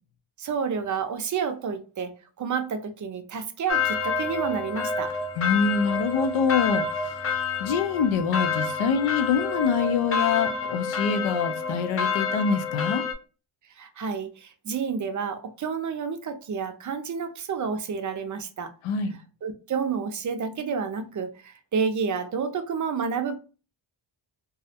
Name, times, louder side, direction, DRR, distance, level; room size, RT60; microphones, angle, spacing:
voice 1, 0.4-2.1 2.4-5.1 13.8-18.7 19.4-23.4, right 6 dB, 40° right, 0.4 m, -30 dB
sound 1, 3.7-13.1, left 5 dB, 30° left, 0.5 m, -28 dB
voice 2, 5.4-7.3 7.6-13.0 18.8-19.2, left 6 dB, 85° left, 0.6 m, -25 dB
2.3 x 2.0 x 2.7 m
cardioid pair, 100°, 48 cm